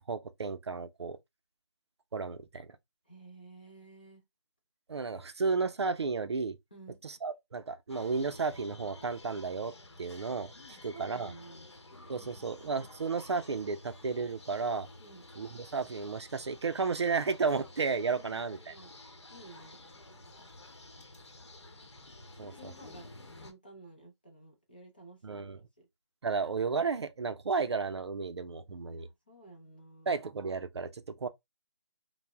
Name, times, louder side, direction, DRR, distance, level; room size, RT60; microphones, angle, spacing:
voice 1, 0.1-1.2 2.1-2.7 4.9-6.6 7.0-9.7 10.0-10.5 10.8-11.3 12.1-14.9 15.4-18.7 22.4-22.7 25.2-25.6 26.2-29.1 30.1-31.3, right 4 dB, 65° right, 0.4 m, -33 dB
voice 2, 3.0-4.2 6.7-7.0 10.7-11.7 12.2-12.6 15.0-15.3 18.0-18.9 19.3-19.8 22.3-23.1 23.4-25.9 28.9-30.1, right 2 dB, 20° left, 0.5 m, -53 dB
sound 1, 7.9-23.5, left 2 dB, 65° left, 0.8 m, -52 dB
2.6 x 2.0 x 3.3 m
hypercardioid pair, 175°, 15 cm